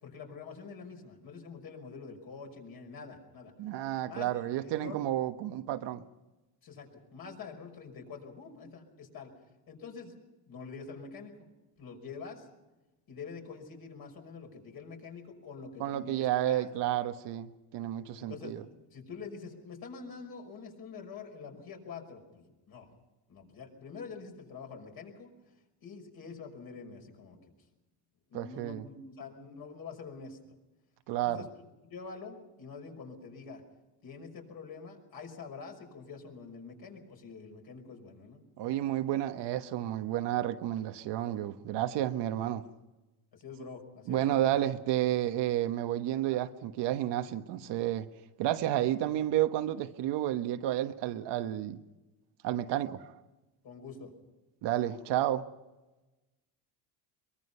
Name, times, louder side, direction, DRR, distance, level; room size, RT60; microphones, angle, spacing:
voice 1, 0.0-3.5 4.0-5.0 6.6-9.3 9.7-10.2 10.4-11.5 11.8-12.5 13.1-16.7 18.2-18.6 18.9-22.9 23.3-25.3 25.8-27.4 28.3-30.4 31.1-31.5 31.9-33.6 34.0-38.8 42.4-42.5 43.3-44.4 53.6-54.1, left 5 dB, 50° left, 5.7 m, -46 dB
voice 2, 3.6-6.0 15.8-18.6 28.3-28.8 31.1-31.5 38.6-42.6 44.1-48.1 48.4-51.8 52.4-53.1 54.6-55.4, right 13 dB, 65° right, 1.3 m, -31 dB
23.0 x 22.5 x 5.6 m
cardioid pair, 120°, 45 cm